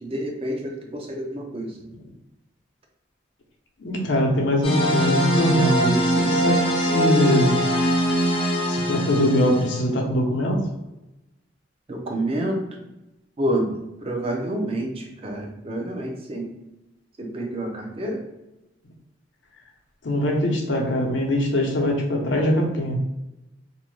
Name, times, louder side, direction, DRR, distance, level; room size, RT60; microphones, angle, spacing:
voice 1, 0.0-1.7 11.9-12.8 13.4-13.8 14.0-16.5 17.2-18.2, right 1 dB, 30° right, 2 dB, 0.5 m, -28 dB
voice 2, 3.8-7.6 8.7-10.7 20.0-23.0, equal, 85° left, 0 dB, 0.6 m, -22 dB
sound 1, 4.6-9.8, equal, 30° left, 0.5 m, -22 dB
2.6 x 2.1 x 3.0 m, 0.95 s
head